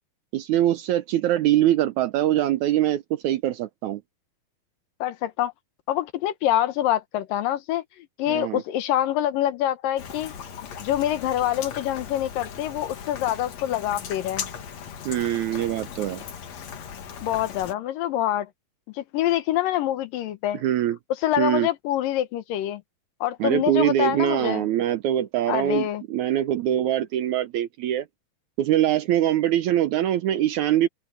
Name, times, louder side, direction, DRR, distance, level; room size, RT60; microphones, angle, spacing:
voice 1, 0.3-4.0 8.3-8.6 15.1-16.2 20.6-21.0 21.4-21.7 23.4-28.1 28.6-30.9, right 12 dB, 75° right, 1.9 m, -23 dB
voice 2, 5.0-5.5 5.9-10.3 10.8-14.5 17.2-18.5 19.0-20.6 21.2-22.8 23.2-24.7 25.5-26.0, left 12 dB, 80° left, 2.8 m, -26 dB
Rain, 10.0-17.7, left 7 dB, 55° left, 2.8 m, -38 dB
open air
omnidirectional pair, 3.9 m